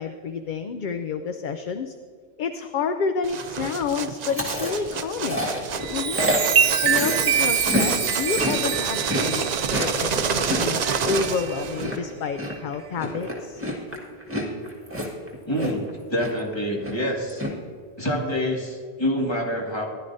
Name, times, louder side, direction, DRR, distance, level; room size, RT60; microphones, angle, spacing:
voice 1, 0.0-1.9 2.4-5.5 5.9-6.2 6.8-13.6, left 5 dB, 55° left, 8 dB, 0.6 m, -29 dB
sound 1, 3.2-12.0, right 6 dB, 50° right, 0.6 m, -29 dB
Chewing mastication, 4.2-7.9 8.2-15.9 16.2-16.5 16.8-17.5, equal, 10° right, 1.8 m, -29 dB
Chime, 5.7-11.7 12.2-12.5, right 7 dB, 70° right, 1.0 m, -25 dB
voice 2, 15.5-15.8 16.1-17.4 18.0-19.9, equal, 25° left, -2 dB, 1.9 m, -26 dB
15.0 x 11.5 x 2.6 m, 2.2 s
omnidirectional pair, 1.1 m